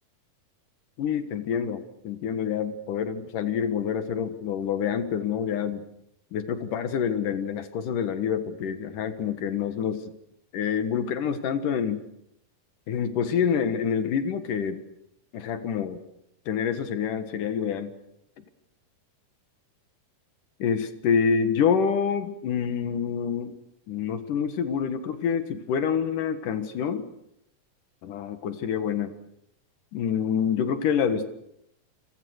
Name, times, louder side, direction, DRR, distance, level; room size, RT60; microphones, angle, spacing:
voice 1, 1.0-5.8 6.3-10.0 10.5-12.0 12.9-14.8 15.3-16.0 16.5-17.9 20.6-23.6 23.9-27.1 28.0-29.1 29.9-31.3, left 7 dB, 75° left, 9 dB, 3.1 m, -27 dB
29.0 x 23.5 x 6.5 m, 0.81 s
omnidirectional pair, 3.8 m